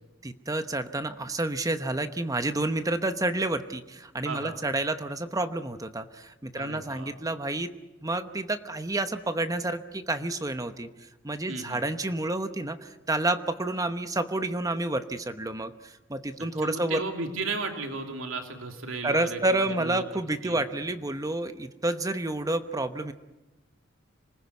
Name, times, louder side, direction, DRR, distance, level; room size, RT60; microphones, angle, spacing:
voice 1, 0.2-7.7 8.0-10.9 11.2-17.0 19.0-23.1, right 2 dB, 15° right, 10 dB, 0.9 m, -29 dB
voice 2, 4.2-4.6 6.5-7.1 11.5-11.8 16.4-20.6, right 3 dB, 85° right, 4 dB, 3.0 m, -35 dB
26.5 x 20.0 x 9.5 m, 1.0 s
head